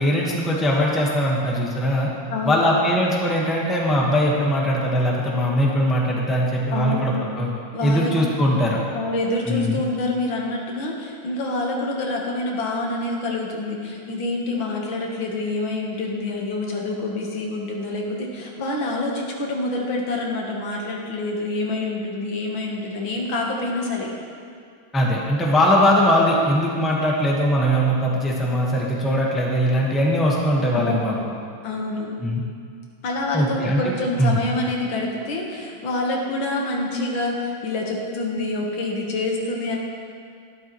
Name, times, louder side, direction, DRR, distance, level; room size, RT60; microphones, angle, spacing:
voice 1, 0.0-2.1 2.4-7.5 7.8-8.8 9.4-9.8 24.9-31.1 32.2-32.4 33.3-34.4, equal, ahead, -3 dB, 0.9 m, -21 dB
voice 2, 2.3-2.6 6.7-7.3 7.7-8.4 8.9-24.1 30.7-31.2 31.6-32.1 33.0-39.8, left 2 dB, 80° left, -1 dB, 2.1 m, -27 dB
12.0 x 11.5 x 3.1 m, 2.3 s
omnidirectional pair, 2.1 m